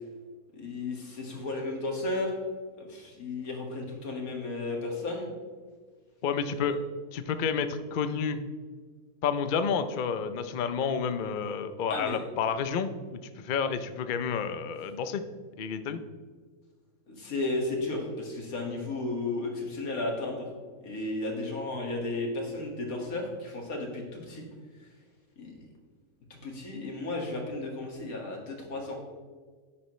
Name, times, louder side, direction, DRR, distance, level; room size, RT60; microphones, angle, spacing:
voice 1, 0.5-2.3 2.8-5.4 6.5-6.7 11.9-12.2 17.1-20.5 20.8-24.4 25.4-25.7 26.3-28.9, left 2 dB, 60° left, 0 dB, 2.3 m, -34 dB
voice 2, 6.2-6.8 7.1-8.4 9.2-15.2 15.6-16.0, left 6 dB, 90° left, 10 dB, 0.4 m, -30 dB
10.5 x 9.7 x 3.2 m, 1.5 s
omnidirectional pair, 1.7 m